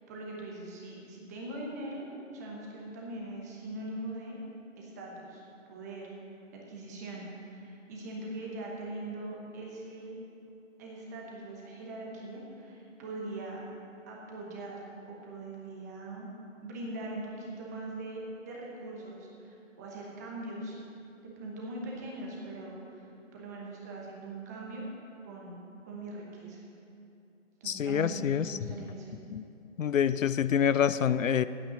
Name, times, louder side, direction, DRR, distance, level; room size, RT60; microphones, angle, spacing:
voice 1, 0.0-2.1 2.3-4.4 4.8-5.4 5.7-6.1 6.7-10.2 10.8-13.6 14.1-16.3 16.6-20.8 21.4-24.8 25.2-25.6 25.9-26.6 27.6-29.1, right 2 dB, 15° right, -3 dB, 1.0 m, -41 dB
voice 2, 27.6-28.6 29.3-29.4 29.8-31.4, left 8 dB, 75° left, 15 dB, 0.5 m, -26 dB
8.6 x 8.2 x 7.4 m, 2.6 s
figure-of-eight pair, 155°, 39 cm